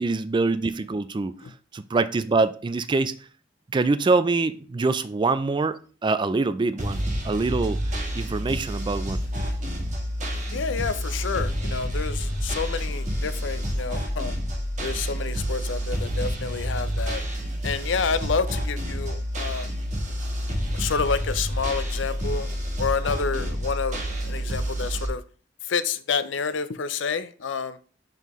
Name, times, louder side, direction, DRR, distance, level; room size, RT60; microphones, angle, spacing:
voice 1, 0.0-1.4 1.7-3.2 3.7-9.2, right 3 dB, 25° right, 0.3 m, -25 dB
sound 1, 6.8-25.1, equal, 40° right, 1.3 m, -29 dB
voice 2, 10.5-14.3 14.8-17.2 17.6-19.7 20.7-22.5 22.8-25.2 25.7-27.8, left 5 dB, 80° left, 0.5 m, -29 dB
5.7 x 5.4 x 3.1 m
head